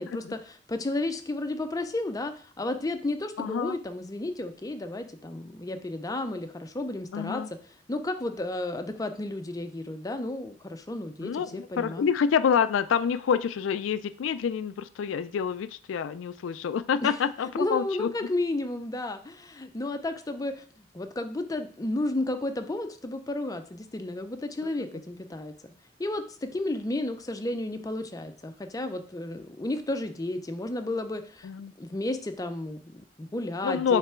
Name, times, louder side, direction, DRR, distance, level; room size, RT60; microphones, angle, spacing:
voice 1, 0.0-7.6 7.9-12.1 17.0-17.2 17.6-25.7 26.0-31.5 31.8-34.0, left 2 dB, 20° left, 7 dB, 0.5 m, -32 dB
voice 2, 3.4-3.8 7.1-7.5 11.2-18.1 24.6-24.7 31.4-31.7 33.6-34.0, left 7 dB, 90° left, 14 dB, 0.3 m, -27 dB
6.7 x 3.3 x 4.4 m, 0.44 s
head